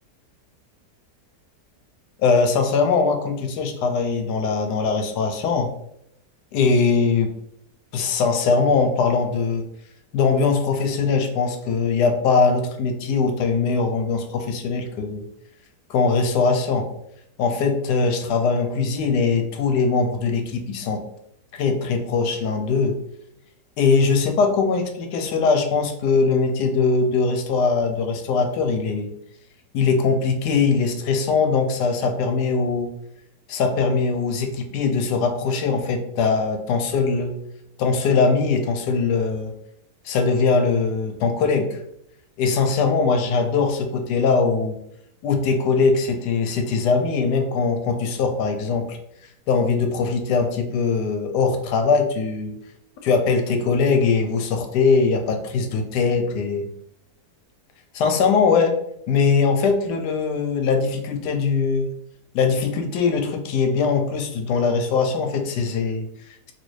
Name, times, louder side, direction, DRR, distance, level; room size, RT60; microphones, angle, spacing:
voice 1, 2.2-5.7 6.5-7.3 7.9-9.7 10.1-15.2 15.9-16.9 17.4-21.0 21.5-23.0 23.8-29.1 29.7-32.9 33.5-37.3 37.8-39.5 40.0-41.8 42.4-44.8 45.2-49.0 49.5-52.6 53.0-56.7 57.9-58.8 59.1-61.9 62.3-66.5, left 4 dB, 80° left, 5 dB, 1.2 m, -21 dB
3.2 x 2.7 x 3.1 m, 0.75 s
omnidirectional pair, 1.7 m